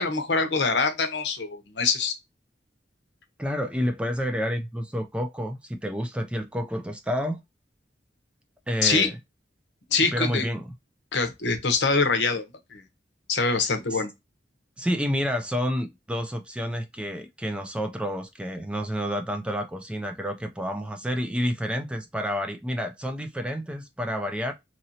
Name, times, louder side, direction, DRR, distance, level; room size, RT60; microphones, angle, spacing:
voice 1, 0.0-2.1 8.8-9.1 9.9-10.4 11.1-12.4 12.7-12.8 13.3-14.1, left 4 dB, 75° left, 0.8 m, -24 dB
voice 2, 3.4-7.4 8.7-9.1 10.1-10.7 13.6-14.0 14.8-24.5, equal, 5° right, 0.3 m, -29 dB
2.9 x 2.7 x 2.7 m
head